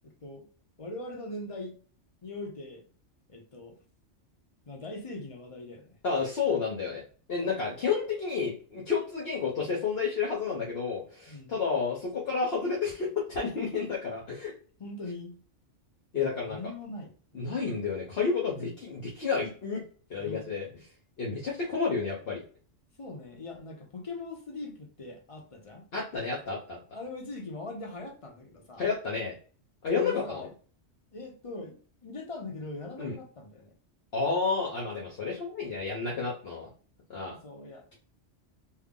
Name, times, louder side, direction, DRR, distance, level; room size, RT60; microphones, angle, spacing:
voice 1, 0.0-0.5 0.8-1.8 2.2-2.8 3.3-3.8 4.7-6.0 11.3-11.6 14.8-15.4 16.4-17.6 20.2-20.5 23.0-25.9 26.9-28.9 30.0-30.5 31.1-33.7 37.3-38.0, left 2 dB, 35° left, 0.7 m, -41 dB
voice 2, 6.0-7.0 7.3-14.5 16.1-16.6 17.3-19.8 20.1-20.7 21.2-22.4 25.9-26.8 28.8-29.3 29.8-30.5 33.0-33.1 34.1-36.7 37.1-37.4, left 5 dB, 55° left, 1.1 m, -30 dB
3.4 x 2.2 x 3.7 m
omnidirectional pair, 1.2 m